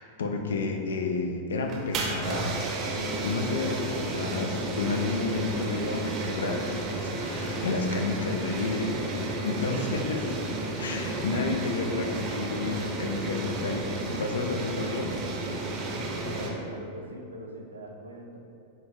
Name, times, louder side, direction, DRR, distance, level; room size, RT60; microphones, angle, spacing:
voice 1, 0.0-2.6 3.2-10.3 10.8-15.1, left 3 dB, 65° left, 3 dB, 0.3 m, -31 dB
sound 1, 1.6-16.5, right 2 dB, 30° right, 0.6 m, -32 dB
voice 2, 16.2-18.4, equal, 75° right, 1 dB, 0.4 m, -42 dB
4.2 x 2.5 x 3.0 m, 2.5 s
figure-of-eight pair, 90°, 0 cm